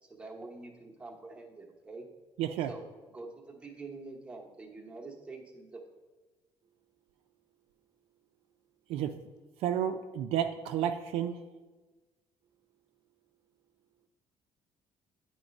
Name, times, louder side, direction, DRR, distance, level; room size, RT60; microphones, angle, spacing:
voice 1, 0.0-2.1 2.7-5.8, right 3 dB, 10° right, 0.9 m, -46 dB
voice 2, 2.4-2.7 8.9-9.1 9.6-11.4, right 10 dB, 85° right, 0.4 m, -31 dB
voice 3, 6.6-8.3 12.5-14.1, right 11 dB, 40° right, 0.6 m, -75 dB
9.1 x 3.1 x 5.2 m
cardioid pair, 165°, 10 cm